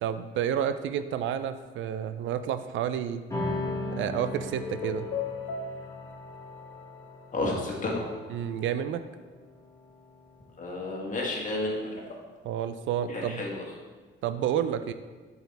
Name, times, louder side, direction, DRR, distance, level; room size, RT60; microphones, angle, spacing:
voice 1, 0.0-3.2 4.0-5.1 8.3-9.0 12.4-13.4 14.2-14.9, right 9 dB, 75° right, 11 dB, 0.4 m, -30 dB
sound 1, 3.3-10.0, left 1 dB, 15° left, 1.6 m, -38 dB
sound 2, 3.4-8.0, left 6 dB, 75° left, 0.6 m, -39 dB
voice 2, 7.3-8.0 10.6-12.0 13.1-13.6, left 2 dB, 40° left, -2 dB, 1.7 m, -31 dB
7.6 x 4.8 x 3.4 m, 1.4 s
cardioid pair, 90°, 20 cm